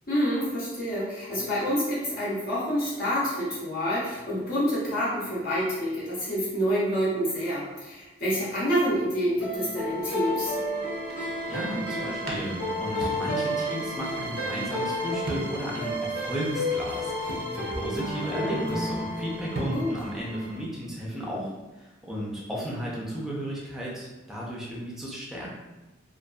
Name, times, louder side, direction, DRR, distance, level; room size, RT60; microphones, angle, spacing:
voice 1, 0.1-10.5 19.7-19.9, equal, 50° left, -8 dB, 0.7 m, -27 dB
sound 1, 9.4-20.6, equal, 90° left, 1.1 m, -31 dB
voice 2, 11.5-25.5, equal, ahead, -5 dB, 0.5 m, -34 dB
sound 2, 12.3-13.7 14.0-14.1 15.3-15.8 16.2-16.3 17.3-18.1 19.2-19.3 19.6-20.2, right 1 dB, 55° right, 0.5 m, -35 dB
2.5 x 2.4 x 2.2 m, 1.1 s
head